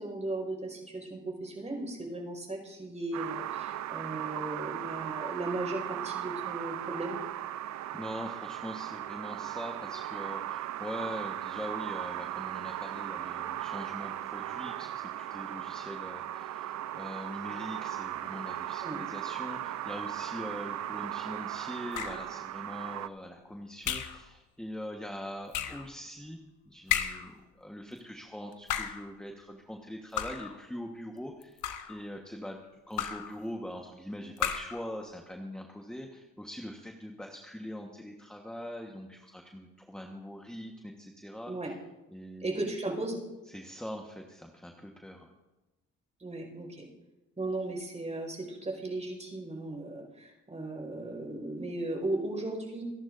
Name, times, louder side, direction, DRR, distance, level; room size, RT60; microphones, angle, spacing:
voice 1, 0.0-7.2 18.8-19.0 41.5-41.7 42.4-43.2 46.2-46.9 47.4-52.8, right 2 dB, 25° right, 2 dB, 5.1 m, -36 dB
sound 1, 3.1-23.1, right 12 dB, 65° right, 0.6 m, -37 dB
voice 2, 7.9-26.4 26.6-31.6 31.9-32.6 32.9-41.5 42.1-42.5 43.5-45.3, equal, 5° left, 1 dB, 1.3 m, -42 dB
sound 2, 21.9-22.4 23.8-24.2 25.5-25.9 26.9-27.4 28.5-29.1 30.2-30.6 31.4-32.0 33.0-33.4 34.4-34.8, left 10 dB, 80° left, 1.2 m, -33 dB
26.5 x 11.0 x 2.6 m, 1.0 s
cardioid pair, 90°, 30 cm